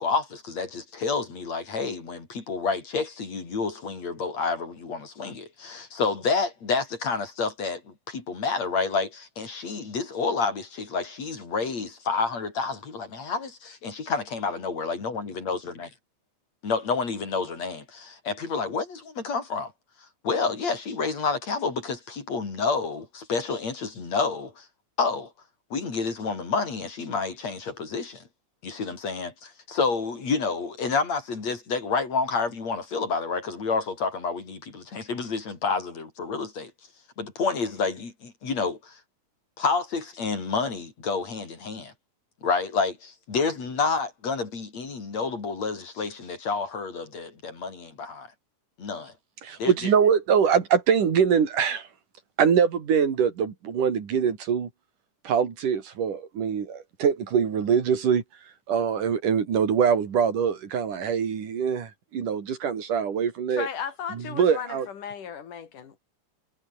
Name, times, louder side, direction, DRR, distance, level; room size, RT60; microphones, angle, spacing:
voice 1, 0.0-15.9 16.6-19.7 20.2-24.7 25.0-25.3 25.7-28.2 28.6-29.3 29.7-36.7 37.2-39.0 39.6-41.9 42.4-48.3 48.8-49.1 49.6-49.7, left 4 dB, 55° left, 5.9 m, -29 dB
voice 2, 49.4-51.9 52.4-54.7 55.2-58.2 58.7-63.7 64.1-64.9, right 7 dB, 85° right, 4.6 m, -23 dB
voice 3, 63.5-66.0, left 8 dB, 85° left, 4.3 m, -35 dB
omnidirectional pair, 3.6 m